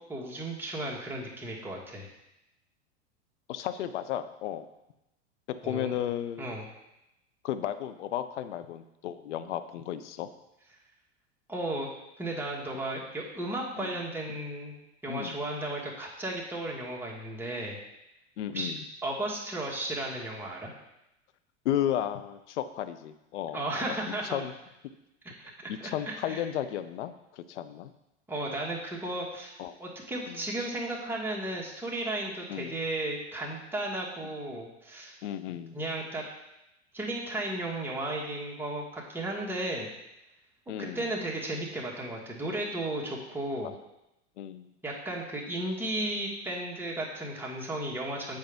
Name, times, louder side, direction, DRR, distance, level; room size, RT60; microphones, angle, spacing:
voice 1, 0.1-2.1 5.6-6.0 6.4-6.7 11.5-11.9 12.2-14.8 15.0-17.8 18.5-18.7 19.0-20.7 23.5-24.4 25.4-26.4 28.3-35.2 35.7-36.2 36.9-39.9 40.8-43.7 44.8-48.4, right 1 dB, 5° right, -3 dB, 1.6 m, -34 dB
voice 2, 3.5-4.7 5.5-6.5 7.4-10.3 13.8-14.0 15.1-15.4 18.4-18.8 21.6-23.6 24.3-24.5 25.7-27.9 29.6-29.8 30.3-30.4 32.5-32.7 35.2-35.8 40.7-41.0 44.4-44.7, left 11 dB, 75° left, 11 dB, 0.6 m, -33 dB
8.0 x 5.0 x 3.4 m, 0.90 s
hypercardioid pair, 95°, 35 cm